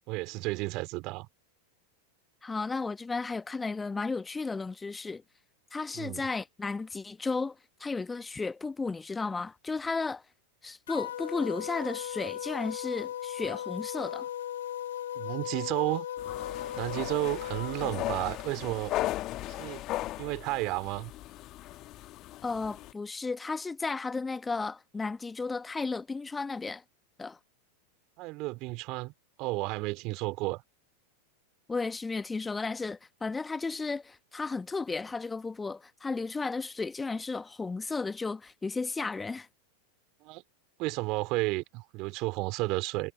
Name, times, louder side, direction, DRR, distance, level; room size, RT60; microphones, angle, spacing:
voice 1, 0.1-1.3 5.9-6.2 15.1-16.1 16.8-18.9 19.5-19.8 20.2-21.1 28.2-29.1 29.4-30.6 40.2-40.4 40.8-43.1, right 23 dB, 40° right, 3.1 m, -32 dB
voice 2, 2.4-5.2 5.7-7.5 7.8-10.2 10.6-14.3 22.4-26.8 27.2-27.4 31.7-39.5, left 4 dB, 10° left, 1.4 m, -34 dB
sound 1, 10.9-18.1, left 11 dB, 60° left, 1.3 m, -37 dB
sound 2, 16.2-22.9, left 16 dB, 35° left, 1.3 m, -37 dB
figure-of-eight pair, 90°, 0 cm